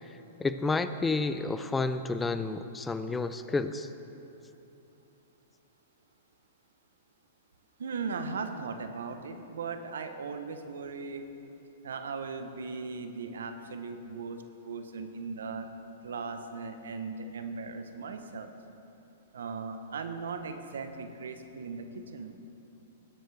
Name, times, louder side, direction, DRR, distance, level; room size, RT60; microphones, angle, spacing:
voice 1, 0.4-3.9, left 3 dB, 10° left, 11 dB, 0.4 m, -30 dB
voice 2, 7.8-11.2 11.8-15.7 16.0-18.5 19.3-22.3, right 4 dB, 75° right, 8 dB, 0.8 m, -38 dB
18.0 x 7.8 x 3.4 m, 2.9 s
hypercardioid pair, 120°, 0 cm